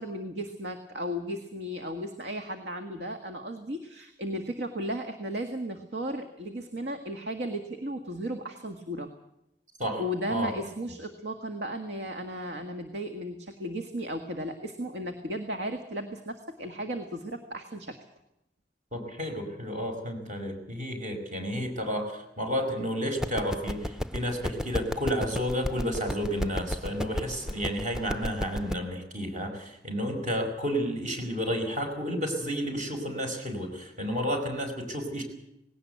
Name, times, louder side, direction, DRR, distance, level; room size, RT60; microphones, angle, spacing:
voice 1, 0.0-9.1 10.0-18.0, equal, 65° right, 6 dB, 1.7 m, -35 dB
voice 2, 18.9-35.2, equal, 45° right, 4 dB, 5.3 m, -31 dB
sound 1, 23.2-28.7, equal, 5° right, 0.7 m, -34 dB
19.5 x 17.5 x 8.2 m, 0.85 s
head